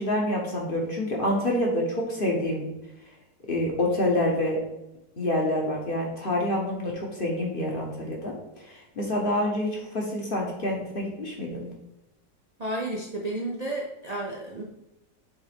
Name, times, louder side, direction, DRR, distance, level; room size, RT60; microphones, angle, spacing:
voice 1, 0.0-2.7 3.5-4.6 5.2-8.3 9.0-11.7, left 1 dB, 35° left, -1 dB, 1.2 m, -27 dB
voice 2, 12.6-14.6, right 1 dB, 40° right, -2 dB, 0.6 m, -32 dB
7.8 x 3.5 x 3.5 m, 0.90 s
omnidirectional pair, 1.8 m